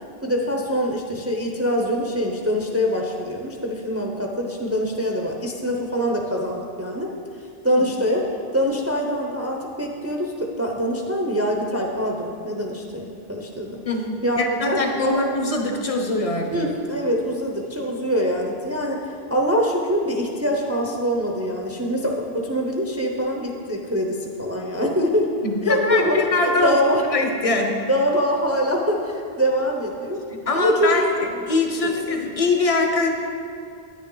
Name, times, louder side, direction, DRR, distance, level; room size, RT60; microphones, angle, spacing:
voice 1, 0.2-7.1 7.6-13.8 14.2-15.2 16.5-25.3 25.6-27.0 27.9-30.2 30.6-31.1 31.8-32.2, equal, 15° right, 0 dB, 0.6 m, -24 dB
voice 2, 13.8-16.7 25.4-26.8 27.1-27.8 30.5-33.1, left 3 dB, 35° left, 3 dB, 0.9 m, -23 dB
9.8 x 9.4 x 3.9 m, 2.5 s
omnidirectional pair, 1.0 m